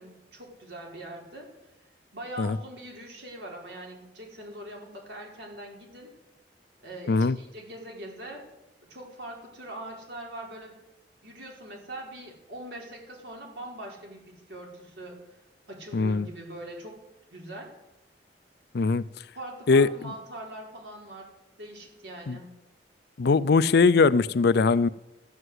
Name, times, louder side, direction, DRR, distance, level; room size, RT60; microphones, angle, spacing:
voice 1, 0.0-1.5 2.1-6.1 6.8-8.5 8.9-10.8 11.2-15.2 15.7-17.0 17.3-17.7 19.3-21.3 21.6-22.5, right 1 dB, 70° right, 0 dB, 4.5 m, -42 dB
voice 2, 15.9-16.3 18.7-19.0 19.7-19.9 22.3-22.4 23.2-24.9, left 4 dB, 65° left, 18 dB, 0.5 m, -21 dB
14.5 x 9.5 x 8.1 m, 0.94 s
head